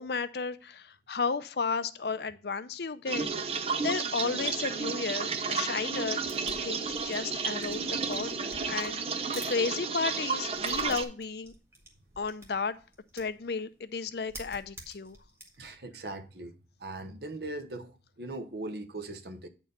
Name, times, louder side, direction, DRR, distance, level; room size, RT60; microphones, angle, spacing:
voice 1, 0.0-3.3 3.8-6.2 6.6-9.0 9.5-11.5 12.2-12.8 13.1-15.2, left 4 dB, 65° left, 0.6 m, -33 dB
sound 1, 3.1-11.0, right 5 dB, 35° right, 0.7 m, -32 dB
sound 2, 6.1-9.6 9.8-13.5 13.8-13.9 14.1-15.7, right 1 dB, 15° right, 1.6 m, -48 dB
voice 2, 15.6-16.5 16.8-19.5, right 2 dB, 65° right, 1.0 m, -40 dB
9.1 x 4.6 x 5.2 m
head